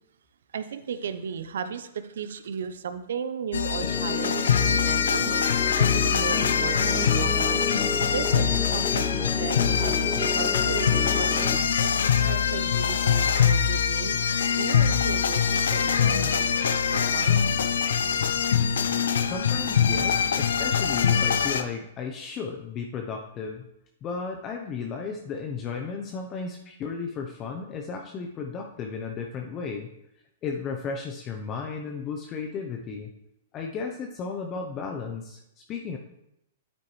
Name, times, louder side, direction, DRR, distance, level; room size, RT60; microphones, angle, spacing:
voice 1, 0.5-5.4 5.8-11.9 12.3-17.4, right 7 dB, 75° right, 11 dB, 0.7 m, -35 dB
sound 1, 3.5-21.6, left 7 dB, 85° left, 0.6 m, -23 dB
sound 2, 3.7-11.6, left 3 dB, 10° left, 0.4 m, -33 dB
voice 2, 19.3-23.6 24.0-29.9 30.4-33.1 33.5-35.4 35.7-36.0, left 5 dB, 30° left, 2 dB, 0.7 m, -34 dB
8.6 x 8.4 x 3.2 m, 0.82 s
hypercardioid pair, 130°, 0 cm